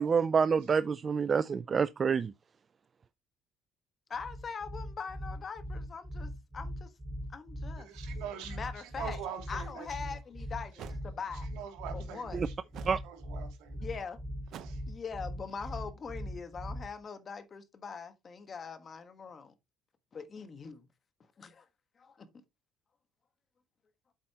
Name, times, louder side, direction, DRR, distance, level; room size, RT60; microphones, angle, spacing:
voice 1, 0.0-2.3 12.9-13.0, right 6 dB, 25° right, 0.4 m, -27 dB
voice 2, 4.1-6.9 7.3-7.9 8.4-9.2 9.5-11.5 11.9-12.4 13.8-14.2 14.9-19.5 20.1-20.9 21.4-21.7 22.0-22.3, left 5 dB, 30° left, 1.4 m, -42 dB
sound 1, 4.1-17.0, equal, 5° right, 3.3 m, -40 dB
voice 3, 7.8-10.2 10.8-10.9 11.5-12.5 12.8-13.8 14.6-14.8, right 9 dB, 85° right, 2.6 m, -44 dB
sound 2, 9.9-10.0 10.8-11.0 12.7-13.1 14.5-14.9, right 9 dB, 55° right, 0.9 m, -46 dB
8.4 x 7.7 x 2.9 m
cardioid pair, 145°, 0 cm